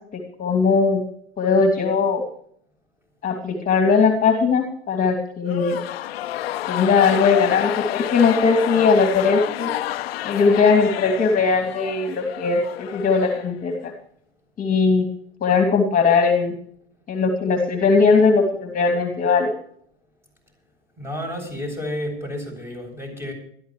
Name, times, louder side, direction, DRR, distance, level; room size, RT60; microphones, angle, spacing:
voice 1, 0.4-1.0 1.4-2.2 3.2-5.8 6.7-9.8 10.2-13.9 14.6-15.0 15.4-16.5 17.1-19.5, left 4 dB, 25° left, 4 dB, 2.7 m, -19 dB
sound 1, 5.4-13.9, left 14 dB, 65° left, 0.9 m, -29 dB
voice 2, 21.0-23.3, left 1 dB, 10° right, 3 dB, 7.9 m, -31 dB
21.5 x 14.0 x 3.2 m, 0.64 s
hypercardioid pair, 90°, 32 cm